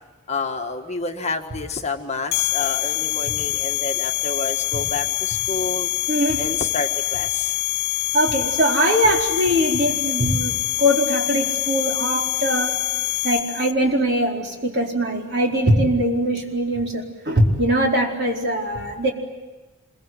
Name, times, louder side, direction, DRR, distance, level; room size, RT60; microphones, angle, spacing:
voice 1, 0.3-5.9 6.4-7.6, left 3 dB, 30° left, 4 dB, 1.7 m, -29 dB
sound 1, 2.3-13.7, left 16 dB, 50° left, 1.3 m, -25 dB
voice 2, 6.1-6.4 8.1-12.8 13.2-19.1, equal, 55° right, 0 dB, 4.6 m, -21 dB
26.5 x 23.5 x 9.5 m, 1.2 s
head